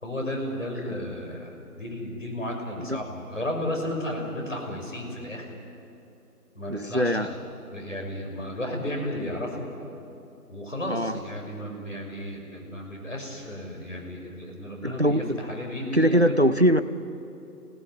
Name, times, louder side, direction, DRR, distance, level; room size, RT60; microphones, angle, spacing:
voice 1, 0.0-1.5 1.8-5.4 6.5-7.4 7.7-9.7 10.5-16.5, left 1 dB, 50° left, 1 dB, 5.9 m, -33 dB
voice 2, 6.7-7.3 10.9-11.2 14.8-15.4 15.9-16.8, equal, 45° right, 11 dB, 0.7 m, -22 dB
28.5 x 18.0 x 9.7 m, 2.7 s
figure-of-eight pair, 175°, 47 cm